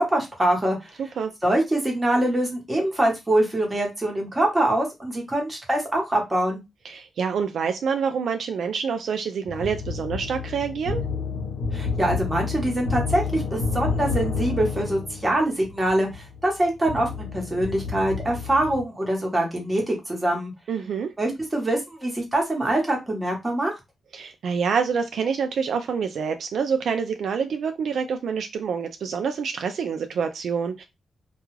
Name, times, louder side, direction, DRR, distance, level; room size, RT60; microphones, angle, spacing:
voice 1, 0.0-0.9 1.4-6.6 11.7-20.5 21.2-23.7, right 1 dB, 15° right, 0 dB, 1.0 m, -24 dB
voice 2, 1.0-1.3 6.8-11.0 20.7-21.1 24.1-30.8, right 6 dB, 70° right, 6 dB, 0.3 m, -27 dB
sound 1, 9.4-18.8, left 5 dB, 75° left, 0.8 m, -30 dB
2.3 x 2.2 x 3.1 m, 0.22 s
wide cardioid pair, 135°, 0 cm